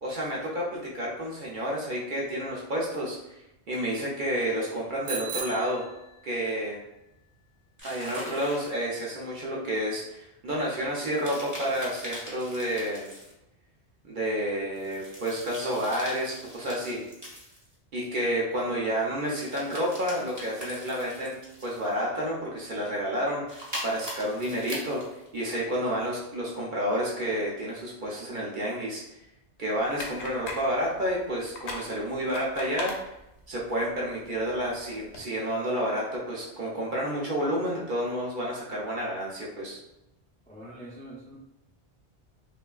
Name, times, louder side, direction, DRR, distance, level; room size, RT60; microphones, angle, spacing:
voice 1, 0.0-3.4 3.7-5.8 6.2-6.8 7.8-13.1 14.0-17.0 17.9-25.0 25.3-29.0 29.6-32.9 33.5-39.8, equal, 55° right, -4 dB, 0.6 m, -30 dB
Bicycle bell, 5.1-6.6, right 6 dB, 85° right, 0.9 m, -37 dB
sound 1, 7.8-9.2 11.1-13.3 14.7-17.7 19.2-22.0 23.5-25.5, equal, 20° right, 0.7 m, -42 dB
sound 2, 29.8-35.2, left 2 dB, 85° left, 0.9 m, -42 dB
voice 2, 40.5-41.4, right 1 dB, 10° left, -6 dB, 0.4 m, -44 dB
3.1 x 2.4 x 2.2 m, 0.90 s
omnidirectional pair, 1.1 m